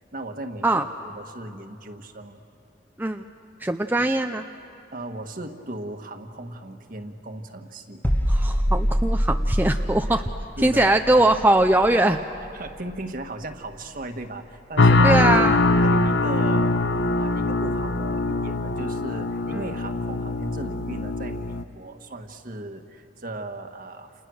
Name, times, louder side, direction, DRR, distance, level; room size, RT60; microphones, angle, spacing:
voice 1, 0.1-2.4 4.9-8.0 10.1-10.2 10.6-11.0 12.5-15.5 15.8-16.8 17.1-24.1, right 1 dB, 50° right, 6 dB, 1.6 m, -37 dB
voice 2, 3.6-4.4 8.3-10.2 10.6-12.2 15.0-15.6 19.5-19.6, right 1 dB, 10° right, 5 dB, 0.6 m, -21 dB
sound 1, 8.0-13.7 14.0-14.2, equal, 10° left, 1.2 m, -26 dB
sound 2, 14.8-21.6, left 2 dB, 90° left, 1.0 m, -22 dB
29.5 x 29.0 x 6.4 m, 2.7 s
head